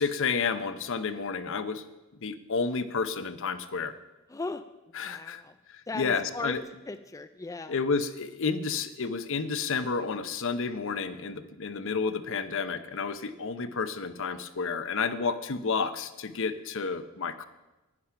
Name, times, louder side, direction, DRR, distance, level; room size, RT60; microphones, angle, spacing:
voice 1, 0.0-1.8 2.2-3.9 5.0-5.4 5.7-6.6 7.7-17.4, left 5 dB, 65° left, 11 dB, 0.8 m, -31 dB
voice 2, 4.3-5.6 5.9-6.6 6.9-7.8, left 3 dB, 15° left, 10 dB, 0.4 m, -38 dB
10.5 x 10.0 x 5.8 m, 1.0 s
head